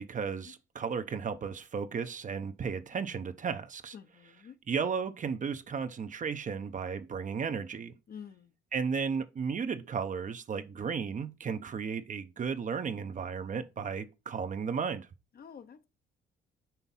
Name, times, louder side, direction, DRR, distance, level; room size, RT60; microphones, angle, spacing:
voice 1, 0.0-4.0 4.7-8.0 8.7-15.1, right 6 dB, 40° right, 0.7 m, -34 dB
voice 2, 3.9-4.5 8.1-8.5 15.4-15.8, left 7 dB, 50° left, 0.8 m, -48 dB
5.7 x 3.5 x 5.5 m
cardioid pair, 90°, 20 cm